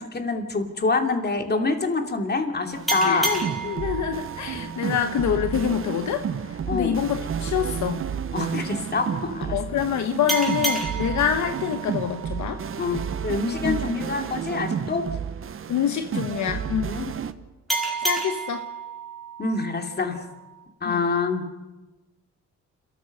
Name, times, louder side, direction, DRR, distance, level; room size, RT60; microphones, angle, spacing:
voice 1, 0.0-3.3 6.7-7.0 8.3-9.6 12.8-15.0 16.8-17.1 19.4-20.2 20.8-21.5, left 3 dB, 35° left, 4 dB, 2.7 m, -26 dB
sound 1, 2.7-17.3, right 7 dB, 45° right, 1.0 m, -31 dB
sound 2, 2.9-6.1 10.3-13.5 17.7-20.6, right 3 dB, ahead, 4.8 m, -31 dB
voice 2, 3.0-8.0 9.5-12.6 13.6-13.8 15.7-16.9 18.0-18.7 20.8-21.0, left 9 dB, 70° left, 8 dB, 1.1 m, -26 dB
29.0 x 14.0 x 6.7 m, 1.1 s
cardioid pair, 90°, 30 cm